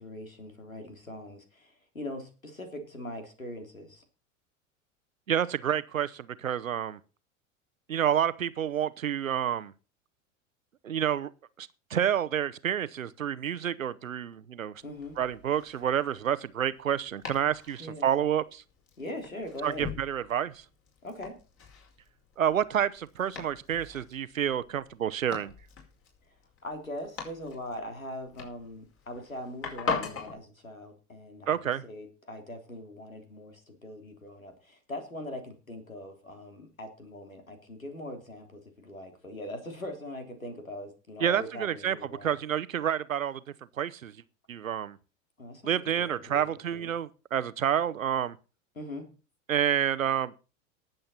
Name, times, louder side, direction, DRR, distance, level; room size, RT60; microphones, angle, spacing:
voice 1, 0.0-4.0 14.8-15.2 17.8-18.1 19.0-19.9 21.0-21.3 26.6-42.4 45.4-45.7 46.0-46.9 48.8-49.1, left 1 dB, 90° left, 3.5 m, -41 dB
voice 2, 5.3-7.0 7.9-9.7 10.8-11.3 11.6-14.7 15.2-18.6 19.6-20.6 22.4-25.5 31.5-31.8 41.2-43.4 43.8-44.2 44.5-45.0 45.6-48.4 49.5-50.3, right 9 dB, 80° right, 0.9 m, -29 dB
Domestic sounds home sounds, 14.8-30.3, left 5 dB, 35° left, 5.1 m, -42 dB
18.5 x 7.9 x 4.3 m
figure-of-eight pair, 85°, 40 cm